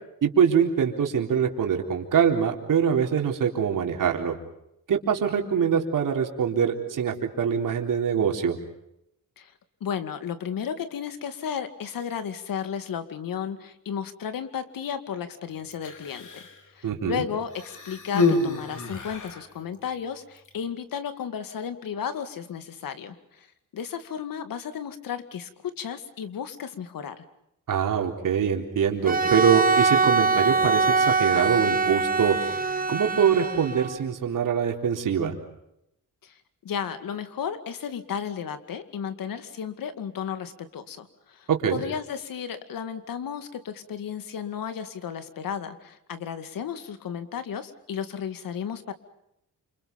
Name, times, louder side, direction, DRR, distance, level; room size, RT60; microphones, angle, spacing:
voice 1, 0.2-4.4 4.9-8.6 16.8-17.2 27.7-32.4 32.9-35.4 41.5-41.8, right 7 dB, 70° right, 2 dB, 3.9 m, -24 dB
voice 2, 9.8-16.4 16.8-23.5 23.7-27.2 36.2-36.3 36.6-48.9, left 8 dB, 85° left, 10 dB, 2.3 m, -34 dB
Human voice, 15.7-16.6 17.5-19.5 20.4-20.5, left 3 dB, 65° left, 4.1 m, -28 dB
Bowed string instrument, 29.0-34.0, right 4 dB, 25° right, 1.4 m, -23 dB
29.0 x 27.5 x 5.4 m, 0.80 s
wide cardioid pair, 120°, 33 cm